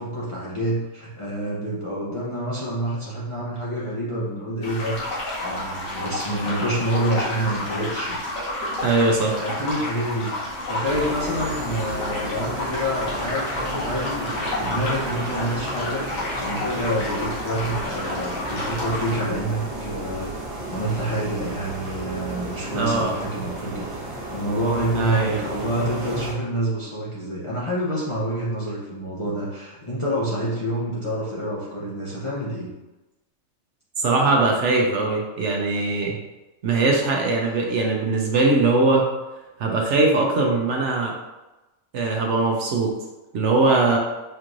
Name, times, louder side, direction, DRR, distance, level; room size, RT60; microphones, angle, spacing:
voice 1, 0.0-8.2 9.4-20.3 20.7-23.9 24.3-32.7, right 1 dB, 30° left, -8 dB, 0.6 m, -27 dB
sound 1, 4.6-19.2, left 1 dB, 85° left, 1.5 m, -30 dB
voice 2, 8.8-9.3 22.7-23.1 24.9-25.4 34.0-36.2 36.6-39.1 39.6-41.1 41.9-42.9 43.3-44.0, right 3 dB, 65° right, 0 dB, 0.9 m, -21 dB
sound 2, 10.8-26.3, right 1 dB, 30° right, 0.8 m, -33 dB
4.5 x 3.0 x 2.5 m, 1.1 s
omnidirectional pair, 1.4 m